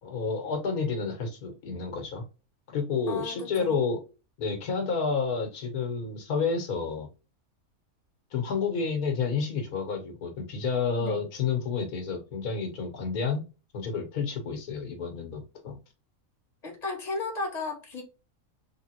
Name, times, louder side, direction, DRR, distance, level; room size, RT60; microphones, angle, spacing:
voice 1, 0.0-2.2 2.7-4.0 4.4-7.1 8.3-13.4 13.7-15.8, left 5 dB, 80° left, 1.5 m, -30 dB
voice 2, 3.1-3.8 11.0-11.3 16.6-18.0, left 3 dB, 30° left, 1.4 m, -34 dB
3.6 x 3.4 x 2.8 m
omnidirectional pair, 1.5 m